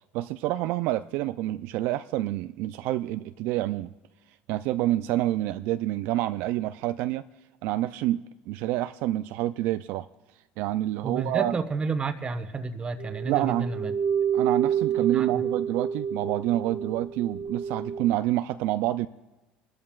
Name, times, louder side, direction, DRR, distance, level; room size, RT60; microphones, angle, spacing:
voice 1, 0.1-3.9 4.5-7.2 7.6-10.1 10.6-11.5 13.3-13.7 14.3-19.1, right 15 dB, 75° right, 11 dB, 0.3 m, -28 dB
voice 2, 11.0-13.9 15.1-15.4, right 4 dB, 30° right, 9 dB, 1.1 m, -31 dB
sound 1, 13.0-18.1, right 8 dB, 50° right, 1.2 m, -28 dB
27.0 x 12.5 x 2.4 m, 1.1 s
supercardioid pair, 100°, 4 cm